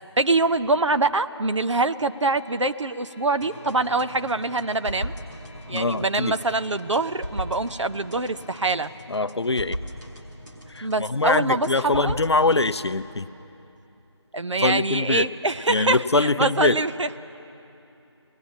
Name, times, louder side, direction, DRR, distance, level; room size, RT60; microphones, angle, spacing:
voice 1, 0.2-5.1 5.7-8.9 10.8-12.2 12.5-12.6 14.3-17.2, right 2 dB, 80° right, 11 dB, 0.8 m, -24 dB
sound 1, 2.0-9.0, left 3 dB, 25° left, 1.1 m, -54 dB
sound 2, 3.4-12.8, equal, 40° right, 2.5 m, -38 dB
voice 2, 5.7-6.4 9.1-9.8 10.7-13.3 14.6-15.3 15.7-16.8, left 3 dB, 65° left, 13 dB, 0.6 m, -23 dB
24.0 x 19.5 x 7.3 m, 2.8 s
figure-of-eight pair, 180°, 15 cm